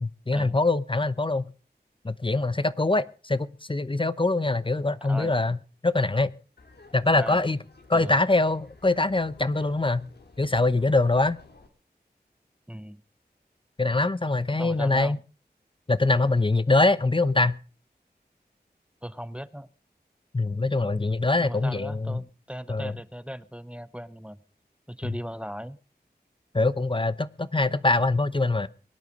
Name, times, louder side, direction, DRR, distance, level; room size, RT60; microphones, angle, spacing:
voice 1, 0.0-1.4 2.0-5.6 5.8-6.3 6.9-7.6 7.9-10.1 10.4-11.4 13.8-15.2 15.9-17.6 20.3-22.2 22.7-22.9 25.0-25.1 26.5-28.7, left 2 dB, 30° left, 0.8 m, -23 dB
Laughter, 6.6-11.7, left 3 dB, 75° left, 2.8 m, -52 dB
voice 2, 12.7-13.0 14.6-15.2 19.0-19.7 21.4-24.4 24.9-25.8, equal, 5° right, 0.7 m, -38 dB
22.5 x 9.7 x 5.2 m
wide cardioid pair, 70°, 17 cm